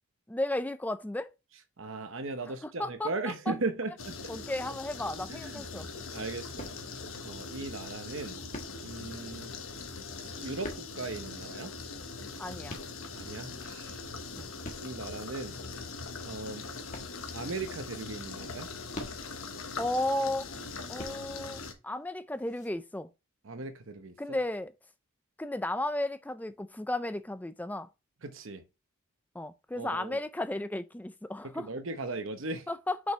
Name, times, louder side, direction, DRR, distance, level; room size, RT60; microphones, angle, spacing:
voice 1, 0.3-1.3 2.6-3.1 3.5-3.6 4.3-5.9 12.4-12.8 14.4-14.5 19.8-20.5 20.9-23.1 24.2-24.7 25.4-27.9 29.3-31.7 32.7-33.1, left 1 dB, 10° left, 0.4 m, -34 dB
voice 2, 1.8-4.1 5.3-5.7 6.1-6.7 7.2-8.4 8.8-9.5 10.4-11.7 13.1-14.0 14.8-15.6 16.2-16.6 17.3-18.7 23.4-24.4 28.2-28.6 29.7-30.2 31.6-32.7, right 3 dB, 65° right, 0.9 m, -37 dB
sound 1, 4.0-21.7, left 4 dB, 70° left, 1.2 m, -41 dB
sound 2, 6.6-7.2 8.0-9.1 10.1-11.3 12.0-13.4 13.9-15.0 15.6-15.7 16.3-17.7 18.4-19.6 20.5-21.6 22.4-22.7, left 1 dB, 35° left, 1.4 m, -46 dB
6.4 x 5.4 x 3.2 m
head